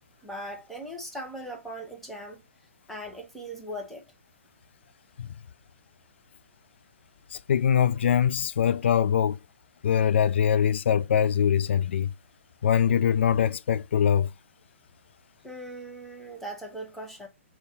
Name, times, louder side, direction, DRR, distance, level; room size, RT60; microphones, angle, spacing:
voice 1, 0.2-2.4 2.9-4.0 15.4-17.3, right 1 dB, ahead, 1.0 m, -39 dB
voice 2, 7.3-9.4 9.8-12.1 12.6-14.3, left 8 dB, 55° left, 0.3 m, -23 dB
3.8 x 2.5 x 4.0 m
figure-of-eight pair, 125°, 7 cm